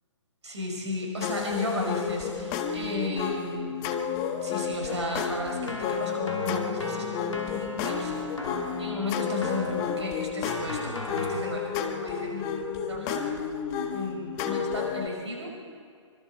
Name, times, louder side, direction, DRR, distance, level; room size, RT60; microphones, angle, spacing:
voice 1, 0.4-3.8 4.4-8.2 8.8-13.5 13.9-15.5, left 2 dB, 65° right, 0 dB, 6.2 m, -34 dB
sound 1, 1.2-15.1, left 7 dB, 25° left, 1.4 m, -31 dB
Keyboard (musical), 4.9-11.4, equal, 80° left, 3.0 m, -39 dB
25.5 x 25.0 x 4.6 m, 2.2 s
figure-of-eight pair, 125°, 16 cm